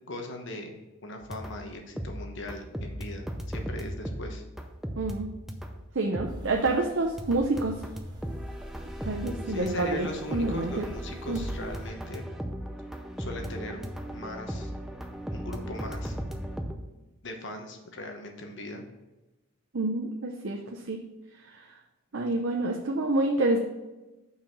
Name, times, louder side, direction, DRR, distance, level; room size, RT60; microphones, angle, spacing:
voice 1, 0.1-4.4 9.5-12.3 13.2-13.8 14.1-14.7 15.3-16.2 17.2-18.8, left 1 dB, 55° left, 4 dB, 1.1 m, -39 dB
sound 1, 1.2-1.7 2.0-5.9 6.1-6.8 7.2-16.7, equal, ahead, 0.5 m, -37 dB
voice 2, 5.0-5.3 5.9-7.8 9.0-10.8 11.3-11.4 19.7-21.0 21.5-21.8 22.1-23.6, right 2 dB, 55° right, 1 dB, 0.6 m, -28 dB
sound 2, 6.3-11.9, equal, 20° right, 1.2 m, -45 dB
5.8 x 4.8 x 6.0 m, 1.1 s
head